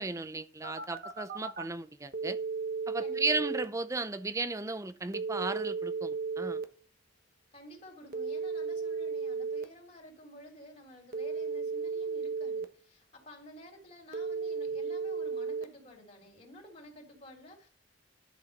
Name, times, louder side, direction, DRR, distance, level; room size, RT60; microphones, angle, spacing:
voice 1, 0.0-2.4 2.9-6.6, right 3 dB, 15° right, 0.5 m, -35 dB
Telephone, 0.6-1.6 2.1-3.6 5.1-6.6 8.1-9.6 11.1-12.6 14.1-15.6, right 5 dB, 50° right, 1.1 m, -34 dB
voice 2, 3.0-3.4 7.5-17.7, equal, 35° left, 3.2 m, -52 dB
11.0 x 6.7 x 5.3 m
head